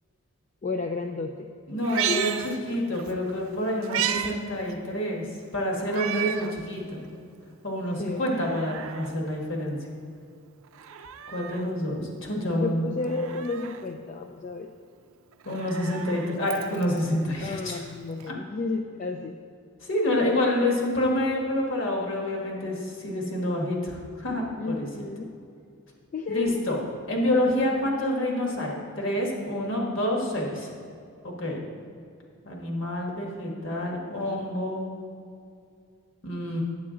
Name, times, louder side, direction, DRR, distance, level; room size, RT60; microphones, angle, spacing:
voice 1, 0.6-1.5 2.1-2.3 8.0-8.2 12.5-14.7 17.4-19.3 24.6-25.3 26.1-26.6, left 3 dB, 35° left, 3 dB, 0.3 m, -32 dB
voice 2, 1.7-5.2 5.5-7.0 7.6-9.8 11.3-12.9 15.4-17.8 18.3-18.4 19.8-24.9 26.3-26.8 27.1-30.7 31.2-31.6 32.4-34.9 36.2-36.6, left 1 dB, 60° left, -1 dB, 1.4 m, -28 dB
Meow, 1.8-3.1 3.5-4.3 4.7-4.8 5.9-6.5 7.1-7.2 8.1-9.1 10.7-11.7 13.0-13.8 15.3-17.0 18.2-18.3, right 9 dB, 75° right, 0.4 m, -33 dB
8.6 x 7.9 x 3.7 m, 2.4 s
head